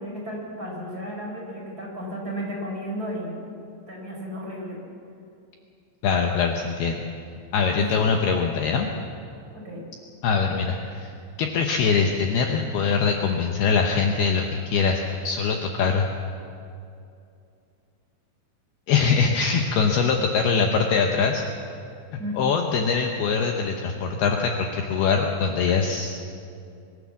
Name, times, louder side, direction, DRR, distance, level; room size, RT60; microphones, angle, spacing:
voice 1, 0.0-3.4 3.9-4.8 7.8-8.0 9.6-9.8 22.2-22.4, equal, 20° right, -3 dB, 4.7 m, -33 dB
voice 2, 6.0-7.1 7.5-8.9 10.2-11.1 11.4-16.1 18.9-21.4 22.4-26.2, left 5 dB, 70° left, 2 dB, 2.6 m, -23 dB
23.5 x 16.0 x 7.3 m, 2.5 s
omnidirectional pair, 5.4 m